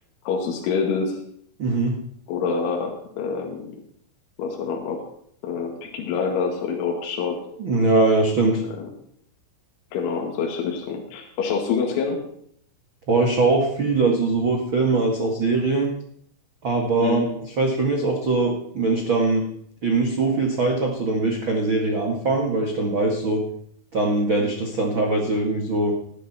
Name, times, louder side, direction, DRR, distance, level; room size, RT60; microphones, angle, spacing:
voice 1, 0.3-1.2 2.3-3.8 4.4-5.0 5.4-7.4 8.8-8.9 9.9-12.2 17.0-17.3, left 5 dB, 70° left, 1 dB, 4.3 m, -26 dB
voice 2, 1.6-1.9 7.6-8.6 13.1-15.9 16.6-17.3 17.6-19.4 19.8-23.4 23.9-25.9, right 3 dB, 90° right, 1 dB, 1.1 m, -21 dB
19.5 x 11.5 x 4.3 m, 0.65 s
omnidirectional pair, 5.7 m